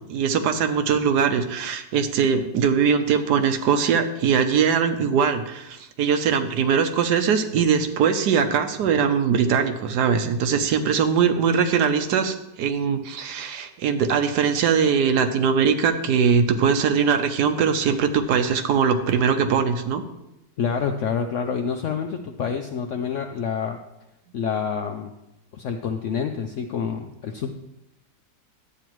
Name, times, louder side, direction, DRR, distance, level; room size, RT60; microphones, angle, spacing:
voice 1, 0.1-20.0, right 6 dB, 75° right, 8 dB, 1.2 m, -21 dB
voice 2, 20.6-23.8 24.3-25.1 25.5-27.5, left 6 dB, 75° left, 4 dB, 0.7 m, -27 dB
11.5 x 8.4 x 3.0 m, 0.90 s
omnidirectional pair, 1.8 m